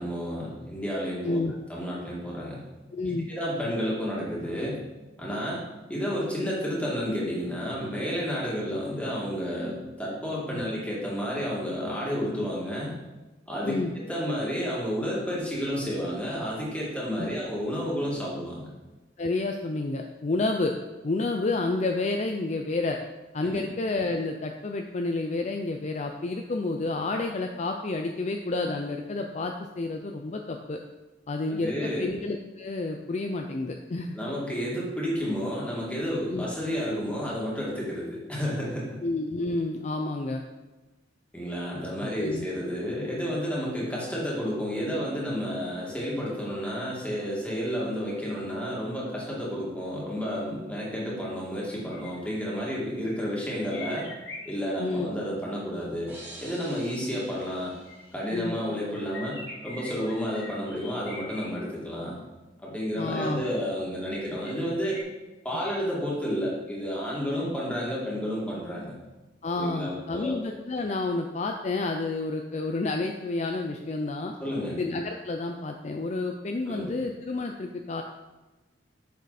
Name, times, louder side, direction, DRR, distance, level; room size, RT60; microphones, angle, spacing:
voice 1, 0.0-1.4 1.7-2.6 3.3-4.8 5.2-5.6 5.9-12.9 13.5-18.7 23.4-23.6 31.5-32.1 34.1-38.9 41.3-54.1 54.5-56.1 56.4-57.7 58.1-62.2 62.6-65.0 65.4-68.9 69.6-70.4 74.4-74.8 76.7-76.9, equal, 5° left, -5 dB, 2.2 m, -31 dB
voice 2, 2.9-3.3 10.5-10.6 13.6-13.9 17.2-17.3 19.2-20.7 21.0-23.0 23.3-30.8 31.3-34.2 36.3-36.5 39.0-40.4 42.0-42.5 54.8-55.1 58.3-58.6 63.0-63.4 69.4-74.3 74.7-78.0, left 2 dB, 40° left, 3 dB, 0.5 m, -30 dB
sound 1, 51.7-52.7 53.5-54.9 56.8-58.2 58.9-61.5 62.9-63.5 64.4-65.0, left 2 dB, 65° left, 1.9 m, -44 dB
sound 2, 56.1-58.8, right 1 dB, 10° right, 2.3 m, -48 dB
8.2 x 6.4 x 4.2 m, 1.1 s
head